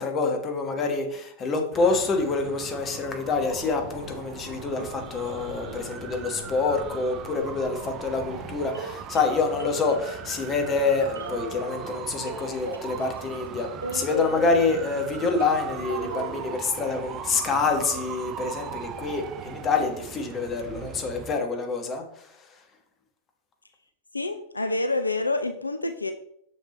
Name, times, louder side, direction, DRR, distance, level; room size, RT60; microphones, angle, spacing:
voice 1, 0.0-13.7 13.9-22.0, left 4 dB, 25° left, 4 dB, 1.3 m, -27 dB
sound 1, 1.7-21.4, right 9 dB, 30° right, 0.5 m, -39 dB
sound 2, 3.3-8.6, left 2 dB, 65° left, 1.8 m, -44 dB
sound 3, 8.7-10.4 11.0-11.9 12.3-16.6, right 1 dB, 80° right, 0.9 m, -37 dB
voice 2, 24.1-26.1, left 2 dB, 80° left, 9 dB, 0.4 m, -27 dB
6.6 x 6.3 x 3.0 m, 0.70 s
figure-of-eight pair, 90°, 0 cm